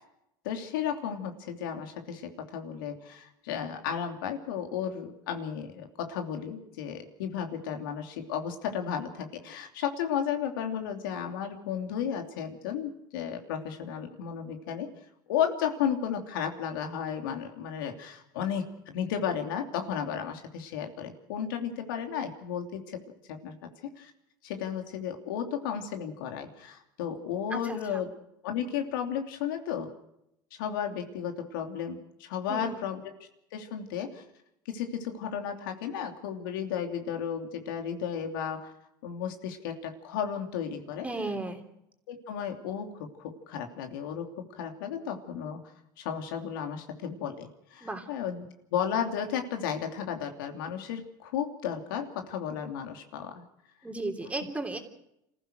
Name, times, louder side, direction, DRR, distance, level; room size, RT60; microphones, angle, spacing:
voice 1, 0.4-14.9 15.3-23.0 23.3-23.5 24.0-24.1 24.4-28.1 28.4-29.9 30.6-33.0 33.5-34.2 34.7-38.7 39.0-41.1 42.1-45.6 46.0-48.4 48.7-53.4 54.4-54.5, left 8 dB, 85° left, 5 dB, 2.9 m, -34 dB
voice 2, 27.5-28.0 32.5-32.7 41.0-41.6 47.8-48.1 53.8-54.8, right 2 dB, 10° right, 5 dB, 3.3 m, -35 dB
27.0 x 15.0 x 6.4 m, 0.81 s
supercardioid pair, 105°, 11 cm